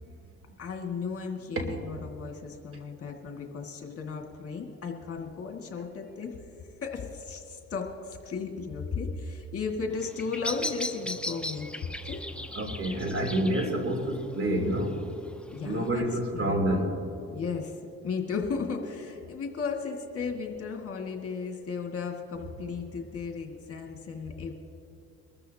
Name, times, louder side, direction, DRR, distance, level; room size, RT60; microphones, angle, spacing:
voice 1, 0.6-6.4 6.8-11.7 12.0-12.2 15.5-16.1 16.3-16.6 17.3-24.5, left 5 dB, 50° left, 2 dB, 2.0 m, -35 dB
Bird vocalization bird call bird song, 9.9-15.9, left 1 dB, 5° left, 0.7 m, -39 dB
voice 2, 12.5-14.9 15.6-16.9, right 1 dB, 45° right, 1 dB, 3.3 m, -28 dB
23.5 x 14.0 x 2.8 m, 2.7 s
cardioid pair, 90°, 30 cm